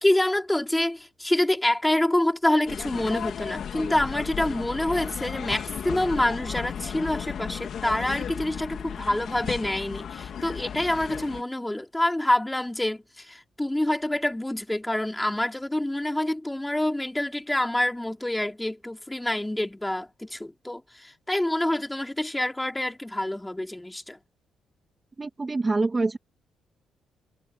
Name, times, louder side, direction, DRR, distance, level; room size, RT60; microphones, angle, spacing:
voice 1, 0.0-24.2, left 1 dB, 10° left, 3.2 m, -26 dB
sound 1, 2.7-11.4, left 8 dB, 60° left, 3.7 m, -34 dB
voice 2, 25.2-26.2, right 3 dB, 25° right, 2.8 m, -25 dB
cardioid pair, 90°, 0 cm